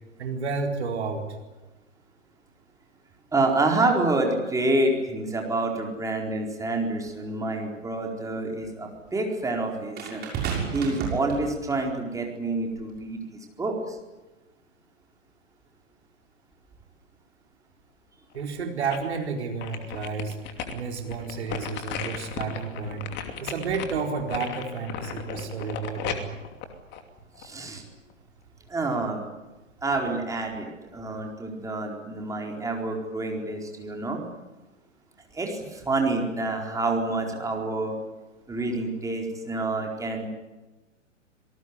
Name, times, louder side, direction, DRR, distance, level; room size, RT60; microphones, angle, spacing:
voice 1, 0.2-1.2 18.3-20.4 20.7-26.3, right 5 dB, 60° right, 3 dB, 4.6 m, -31 dB
voice 2, 3.3-10.2 10.7-13.2 13.6-14.0 27.4-27.8 28.7-29.2 29.8-30.7 30.9-34.2 35.3-37.9 38.5-40.3, right 2 dB, 10° right, 1 dB, 4.4 m, -27 dB
sound 1, 7.1-7.2 10.0-11.9 12.8-13.0, right 7 dB, 25° right, 6.6 m, -32 dB
sound 2, 18.3-19.2 19.6-27.7 28.1-28.2, left 7 dB, 30° left, 2.8 m, -36 dB
27.0 x 19.0 x 9.7 m, 1.1 s
figure-of-eight pair, 110°, 38 cm